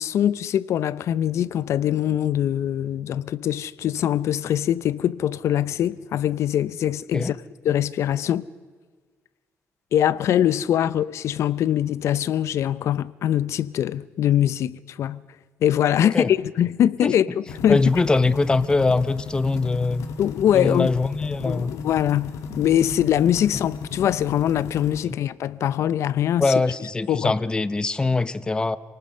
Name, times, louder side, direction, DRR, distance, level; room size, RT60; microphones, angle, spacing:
voice 1, 0.0-7.4 7.6-8.4 9.9-15.2 15.6-17.8 20.2-20.9 21.4-26.5 27.1-27.3, left 10 dB, 65° left, 0.7 m, -23 dB
sound 1, 17.5-25.0, left 5 dB, 80° left, 2.0 m, -35 dB
voice 2, 17.7-20.0 20.5-21.7 25.1-25.2 26.4-28.8, left 3 dB, 15° left, 0.7 m, -22 dB
27.5 x 19.0 x 5.6 m
cardioid pair, 120°, 5 cm